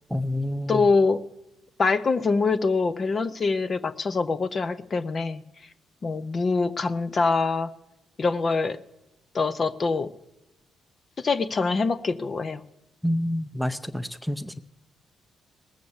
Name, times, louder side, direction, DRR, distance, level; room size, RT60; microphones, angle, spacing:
voice 1, 0.1-0.9 13.0-14.6, left 1 dB, ahead, 13 dB, 0.6 m, -28 dB
voice 2, 0.7-1.2 1.8-5.4 6.0-7.7 8.2-8.8 9.3-10.1 11.2-12.6, left 4 dB, 40° left, 13 dB, 0.7 m, -24 dB
19.0 x 7.6 x 7.1 m, 0.92 s
cardioid pair, 90°, 0 cm